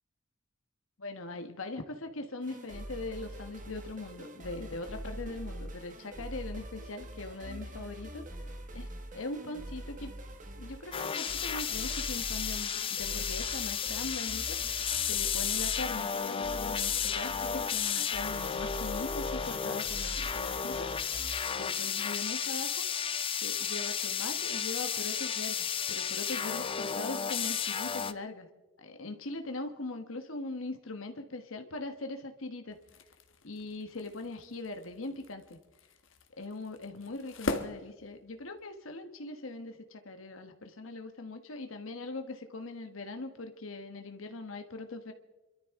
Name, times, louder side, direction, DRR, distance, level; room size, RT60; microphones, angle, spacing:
voice 1, 1.0-8.2 8.7-8.9 9.1-10.1 10.6-14.6 15.0-20.9 21.5-22.8 23.4-28.5 28.8-32.8 33.4-35.6 36.3-45.1, left 2 dB, 90° left, 6 dB, 1.3 m, -41 dB
sound 1, 2.4-21.4, right 1 dB, 40° right, 1.3 m, -44 dB
sound 2, 10.9-28.1, left 7 dB, 25° left, 0.5 m, -33 dB
sound 3, 32.7-38.7, left 2 dB, 70° left, 1.4 m, -42 dB
27.5 x 13.0 x 3.7 m, 1.1 s
head